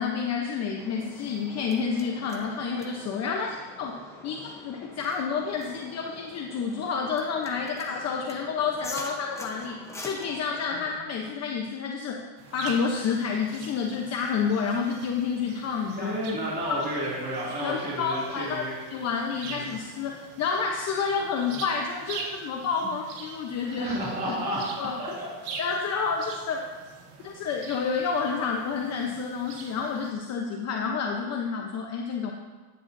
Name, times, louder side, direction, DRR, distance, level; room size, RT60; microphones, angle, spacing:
voice 1, 0.0-9.8 10.0-12.2 12.5-16.2 17.6-18.6 18.9-24.0 24.3-24.4 24.8-25.0 25.6-26.7 27.2-32.3, left 5 dB, 35° left, 1 dB, 0.9 m, -29 dB
sound 1, 0.8-11.0, left 2 dB, 5° left, 0.8 m, -45 dB
sound 2, 12.4-30.1, right 4 dB, 50° right, 1.8 m, -44 dB
voice 2, 16.0-18.7 19.4-19.7 23.6-24.7 25.0-25.3, equal, 20° right, -7 dB, 2.6 m, -31 dB
14.5 x 10.5 x 2.7 m, 1.3 s
supercardioid pair, 145°, 48 cm